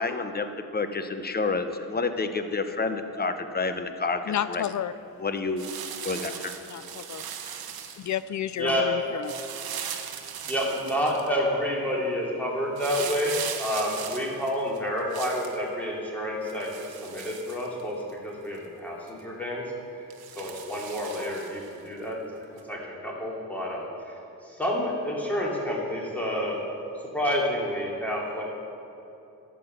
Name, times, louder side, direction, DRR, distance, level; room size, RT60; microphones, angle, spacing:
voice 1, 0.0-4.6 5.2-5.7 6.0-6.5, left 4 dB, 25° left, 8 dB, 0.9 m, -29 dB
voice 2, 4.3-4.9 6.7-7.2 8.0-9.3, left 10 dB, 45° left, 14 dB, 0.4 m, -31 dB
sound 1, 5.6-8.2 9.2-11.3 12.8-15.6 16.5-18.1 18.5-18.6 19.1-19.2 20.1-21.7 22.6-22.7, right 8 dB, 65° right, 1.0 m, -38 dB
voice 3, 8.6-9.1 10.4-16.7 17.0-19.6 20.4-22.2 22.7-24.1 24.4-26.6 27.1-28.4, equal, 5° left, -4 dB, 2.7 m, -29 dB
12.0 x 7.9 x 6.7 m, 2.8 s
cardioid pair, 95°, 40 cm